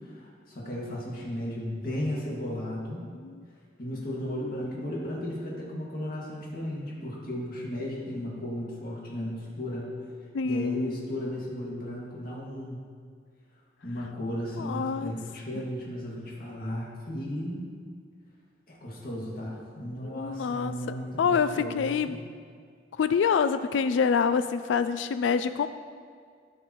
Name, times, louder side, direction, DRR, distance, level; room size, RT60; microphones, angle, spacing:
voice 1, 0.0-3.1 3.8-9.9 10.4-12.8 13.8-17.7 18.7-22.2, left 1 dB, 55° left, -4 dB, 2.0 m, -35 dB
voice 2, 10.3-10.9 14.6-15.1 20.0-22.2 22.9-25.7, left 6 dB, 90° left, 11 dB, 0.3 m, -26 dB
12.5 x 7.2 x 3.0 m, 2.1 s
head